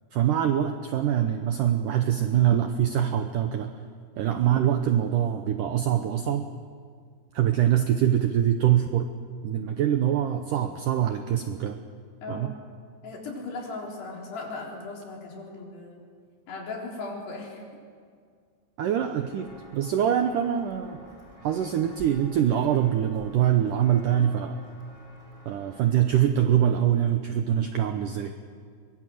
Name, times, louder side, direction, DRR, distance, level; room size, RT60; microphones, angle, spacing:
voice 1, 0.1-3.7 4.2-6.5 7.3-9.1 9.4-11.8 12.3-12.5 18.8-21.0 21.4-24.6 25.5-28.3, right 10 dB, 80° right, 6 dB, 1.9 m, -24 dB
voice 2, 13.0-16.0 16.5-17.6, left 3 dB, 70° left, -1 dB, 6.0 m, -37 dB
Walk footsteps, 19.2-25.9, equal, 5° left, 4.8 m, -50 dB
24.0 x 21.5 x 7.8 m, 2.1 s
omnidirectional pair, 4.9 m